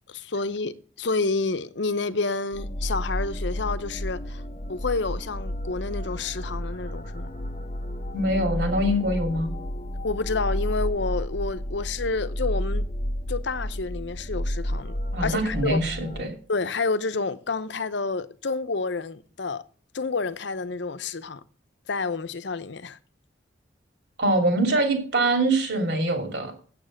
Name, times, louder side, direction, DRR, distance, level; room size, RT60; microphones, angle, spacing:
voice 1, 0.1-4.4 4.7-7.3 10.0-12.8 13.3-15.9 16.5-19.6 19.9-21.4 21.9-23.0, left 3 dB, 65° left, 0.7 m, -29 dB
sound 1, 2.5-16.3, equal, 35° left, 0.8 m, -31 dB
voice 2, 8.1-9.5 15.1-16.3 24.2-26.5, right 1 dB, 60° right, 3.0 m, -24 dB
8.9 x 7.8 x 6.4 m
head